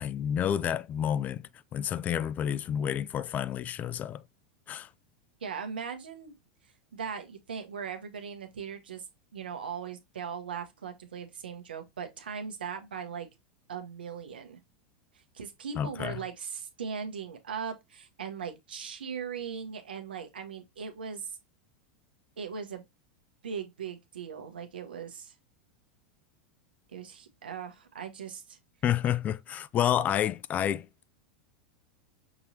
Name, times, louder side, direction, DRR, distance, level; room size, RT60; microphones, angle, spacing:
voice 1, 0.0-4.2 4.7-4.9 15.8-16.2 28.8-30.9, left 10 dB, 30° left, 0.3 m, -29 dB
voice 2, 5.4-6.3 6.9-9.0 9.3-13.3 13.7-14.6 15.1-21.3 22.4-22.8 23.4-25.3 26.9-28.6, right 6 dB, 90° right, 1.0 m, -39 dB
6.0 x 3.1 x 2.7 m
hypercardioid pair, 105°, 5 cm